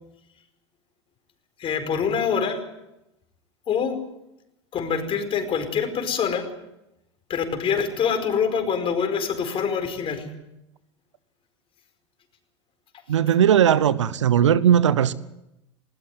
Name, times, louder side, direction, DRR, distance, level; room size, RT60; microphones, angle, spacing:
voice 1, 1.6-2.6 3.7-4.0 4.7-6.5 7.3-10.2, left 6 dB, 35° left, 4.9 m, -25 dB
voice 2, 13.1-15.1, right 9 dB, 80° right, 0.9 m, -18 dB
20.0 x 19.0 x 9.4 m
hypercardioid pair, 85°, 15 cm